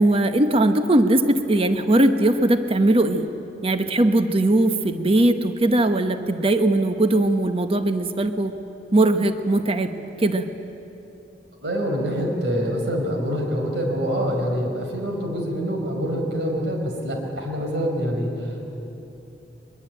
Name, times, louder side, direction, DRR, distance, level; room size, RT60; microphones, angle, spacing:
voice 1, 0.0-3.3 3.6-8.5 8.9-10.5, right 1 dB, 35° right, 8 dB, 1.0 m, -20 dB
voice 2, 11.6-18.6, equal, 85° right, 2 dB, 4.6 m, -25 dB
22.5 x 22.0 x 9.0 m, 2.9 s
head